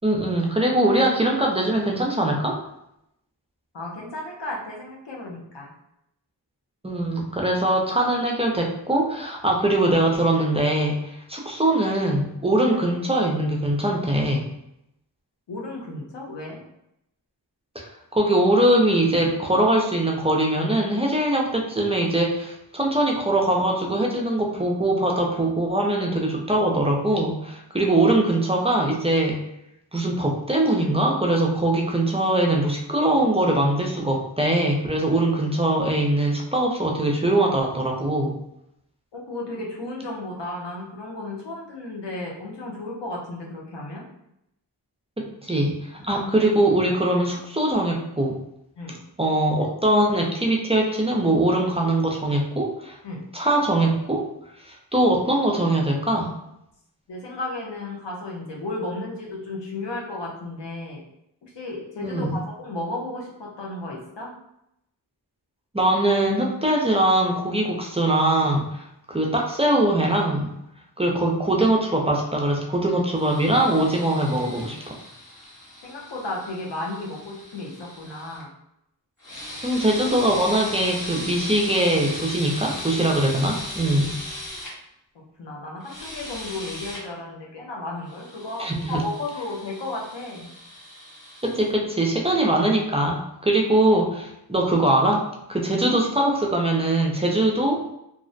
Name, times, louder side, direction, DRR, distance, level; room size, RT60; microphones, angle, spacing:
voice 1, 0.0-2.6 6.8-14.5 17.8-29.4 29.9-38.3 45.2-48.4 49.2-53.0 53.3-54.3 54.7-56.3 62.0-62.4 65.7-70.5 71.0-75.0 79.6-84.1 88.6-89.0 91.4-97.8, right 1 dB, 15° right, 0 dB, 0.4 m, -22 dB
voice 2, 3.7-5.7 15.5-16.6 39.1-44.1 48.8-49.0 53.0-53.2 57.1-61.0 61.4-64.3 75.8-78.5 85.4-90.5, left 2 dB, 80° left, -2 dB, 0.7 m, -34 dB
sound 1, 73.1-78.4 79.2-84.7 85.8-87.0 88.1-91.7, left 1 dB, 45° left, 1.0 m, -37 dB
2.4 x 2.0 x 2.5 m, 0.80 s
wide cardioid pair, 55°, 43 cm